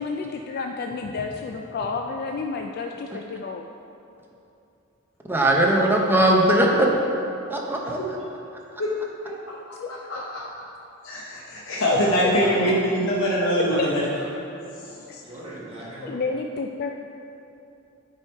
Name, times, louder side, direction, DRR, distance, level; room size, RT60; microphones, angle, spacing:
voice 1, 0.0-3.6 9.8-9.9 11.9-12.3 15.1-15.2 16.0-16.9, left 4 dB, 50° left, 3 dB, 0.3 m, -30 dB
voice 2, 5.3-6.9 7.5-8.2, right 1 dB, 10° right, -1 dB, 0.8 m, -20 dB
voice 3, 10.1-10.4 11.0-14.0 14.8-14.9, equal, 70° left, -6 dB, 0.9 m, -23 dB
voice 4, 12.4-12.7 13.7-14.5 15.2-16.2, right 1 dB, 30° right, -8 dB, 1.7 m, -36 dB
8.9 x 4.9 x 4.5 m, 2.8 s
head